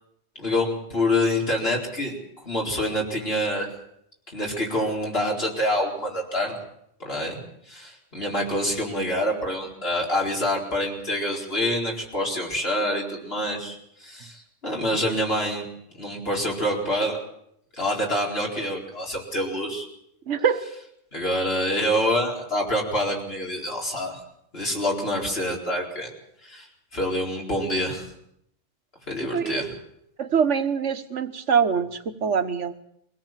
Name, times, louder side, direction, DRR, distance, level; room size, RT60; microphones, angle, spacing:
voice 1, 0.3-2.2 2.4-3.7 4.3-6.5 7.0-7.4 7.7-15.6 16.0-17.2 17.8-19.9 21.1-24.2 24.5-26.1 26.4-26.7 26.9-28.1 29.1-29.7, left 1 dB, 55° left, -1 dB, 4.7 m, -26 dB
voice 2, 20.3-20.7 29.3-29.6 30.2-32.7, right 6 dB, 75° right, 9 dB, 1.6 m, -24 dB
23.5 x 17.5 x 7.5 m, 0.75 s
omnidirectional pair, 1.3 m